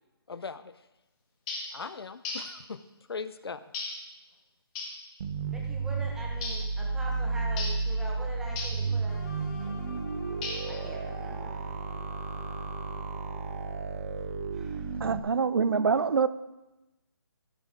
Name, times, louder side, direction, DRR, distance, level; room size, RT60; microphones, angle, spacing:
voice 1, 0.3-0.7 1.7-2.8 3.1-3.6, left 5 dB, 75° left, 14 dB, 0.7 m, -39 dB
sound 1, 1.5-1.8 2.2-2.6 3.7-4.1 4.8-5.0 6.4-6.7 7.6-7.9 8.6-8.9 10.4-10.8, left 3 dB, 15° left, 1.3 m, -36 dB
sound 2, 5.2-15.2, right 4 dB, 35° right, 0.8 m, -33 dB
voice 2, 5.5-9.7 10.6-11.5 14.5-14.9, right 1 dB, 5° right, -2 dB, 1.1 m, -43 dB
sound 3, 9.1-14.0, left 3 dB, 40° left, 1.8 m, -48 dB
voice 3, 15.0-16.3, right 5 dB, 65° right, 15 dB, 0.5 m, -25 dB
15.0 x 6.4 x 3.7 m, 0.99 s
figure-of-eight pair, 160°, 13 cm